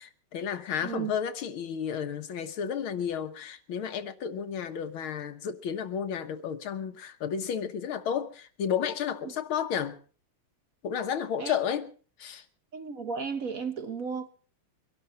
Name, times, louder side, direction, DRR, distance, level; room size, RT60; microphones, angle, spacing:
voice 1, 0.0-10.0 10.8-11.9 12.2-12.5, left 8 dB, 90° left, 2.1 m, -32 dB
voice 2, 12.7-14.3, right 6 dB, 50° right, 1.2 m, -34 dB
23.5 x 12.0 x 4.1 m
omnidirectional pair, 2.2 m